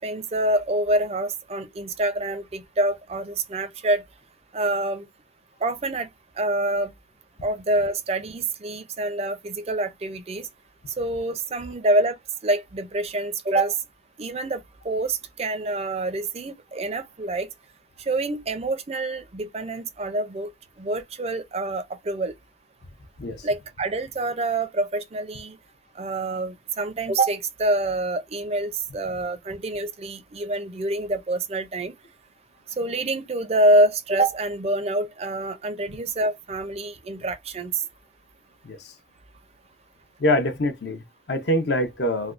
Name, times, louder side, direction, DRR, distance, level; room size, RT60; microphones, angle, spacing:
voice 1, 0.0-4.0 4.5-5.0 5.6-6.1 6.4-6.9 7.4-10.5 11.0-12.2 12.4-13.8 14.2-17.5 18.1-20.5 20.8-22.3 23.4-25.6 26.0-31.9 32.8-37.7, right 2 dB, 35° right, 0.4 m, -26 dB
voice 2, 40.2-42.3, left 1 dB, 60° left, 0.6 m, -25 dB
3.3 x 2.2 x 2.5 m
head